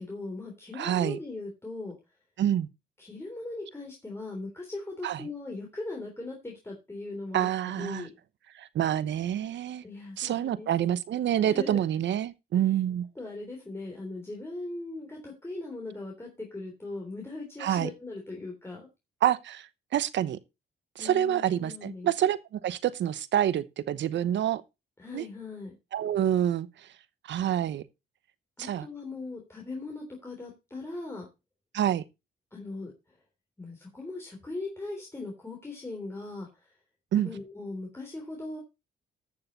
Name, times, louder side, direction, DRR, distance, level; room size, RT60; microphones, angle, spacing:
voice 1, 0.0-2.0 3.0-8.1 9.8-10.7 11.5-11.8 13.2-18.9 21.0-22.1 25.0-25.8 28.6-31.3 32.5-32.9 33.6-36.7 37.1-38.6, left 2 dB, 10° left, 3.5 m, -39 dB
voice 2, 0.8-1.2 2.4-2.7 5.0-5.2 7.3-8.1 8.6-9.8 10.2-13.1 17.6-17.9 19.2-19.7 19.9-20.4 21.0-24.6 25.1-25.2 25.9-26.7 27.3-27.8 28.6-28.9 31.7-32.0 37.1-37.3, right 11 dB, 65° right, 1.0 m, -27 dB
14.0 x 6.8 x 4.1 m
cardioid pair, 90°, 20 cm